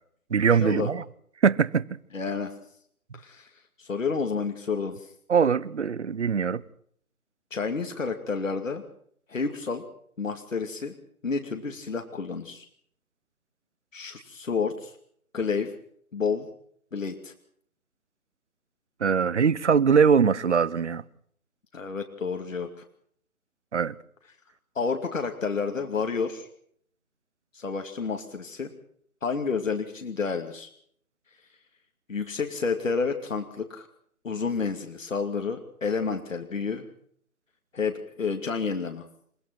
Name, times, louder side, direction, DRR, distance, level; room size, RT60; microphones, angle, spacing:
voice 1, 0.3-1.0 1.4-1.8 5.3-6.6 19.0-21.0 23.7-23.9, right 6 dB, 50° right, 1.1 m, -22 dB
voice 2, 2.1-2.5 3.1-3.5 3.8-5.1 7.5-8.8 9.3-9.8 10.2-10.9 11.2-12.6 13.9-15.0 15.3-15.7 16.1-16.5 16.9-17.3 21.7-22.8 24.7-26.5 27.5-28.7 29.2-30.7 32.1-33.9 34.2-36.9 37.7-39.0, left 5 dB, 60° left, 2.7 m, -30 dB
28.5 x 16.5 x 6.0 m
figure-of-eight pair, 150°, 43 cm